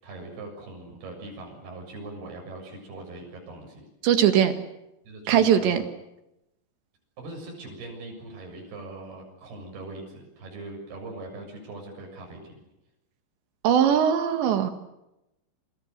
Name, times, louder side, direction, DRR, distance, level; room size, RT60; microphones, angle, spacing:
voice 1, 0.0-3.9 5.1-5.9 7.2-12.6, right 2 dB, 60° right, 1 dB, 9.1 m, -41 dB
voice 2, 4.0-4.5 5.3-5.8 13.6-14.7, right 9 dB, 75° right, 8 dB, 4.0 m, -20 dB
28.5 x 26.5 x 6.8 m, 0.89 s
omnidirectional pair, 5.1 m